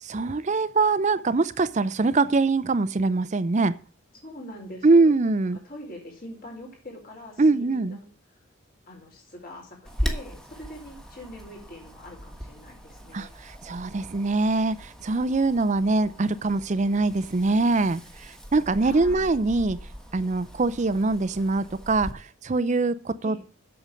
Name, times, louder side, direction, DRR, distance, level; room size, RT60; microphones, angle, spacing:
voice 1, 0.0-3.7 4.8-5.6 7.4-8.0 13.1-19.8 20.1-23.4, right 3 dB, 35° right, 15 dB, 0.5 m, -23 dB
voice 2, 4.1-5.2 5.6-8.0 8.9-13.3 18.8-19.3 23.2-23.4, left 1 dB, 45° left, 0 dB, 4.6 m, -43 dB
Wind, 9.8-22.1, equal, 5° left, 1.4 m, -39 dB
8.2 x 7.1 x 6.2 m, 0.41 s
head